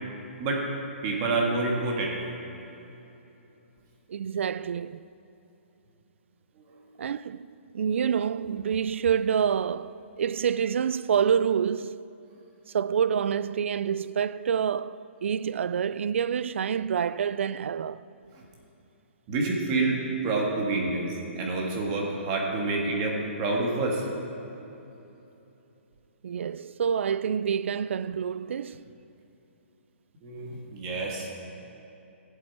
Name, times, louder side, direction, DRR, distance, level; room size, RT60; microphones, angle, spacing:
voice 1, 1.0-2.2 19.3-20.0 20.2-21.1 21.4-24.0 30.2-31.3, right 3 dB, 25° right, 1.7 m, -27 dB
voice 2, 4.1-5.1 7.0-7.5 7.7-12.0 12.7-18.0 26.2-28.8, right 7 dB, 70° right, 0.3 m, -27 dB
15.5 x 7.6 x 4.6 m
hypercardioid pair, 160°, 7 cm